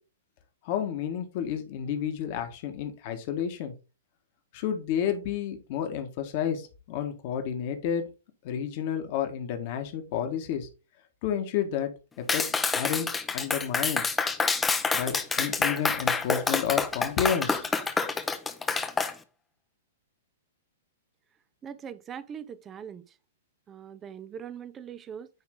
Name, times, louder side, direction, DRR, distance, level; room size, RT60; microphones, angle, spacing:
voice 1, 0.6-3.7 4.5-8.0 8.4-10.7 11.2-11.9 12.2-14.0 14.9-17.7, left 9 dB, 45° left, 1.5 m, -31 dB
Clapping, 12.3-19.1, left 4 dB, 10° left, 0.7 m, -27 dB
voice 2, 21.6-23.0 23.7-25.3, right 8 dB, 20° right, 0.6 m, -41 dB
9.6 x 3.2 x 3.8 m
figure-of-eight pair, 110°, 0 cm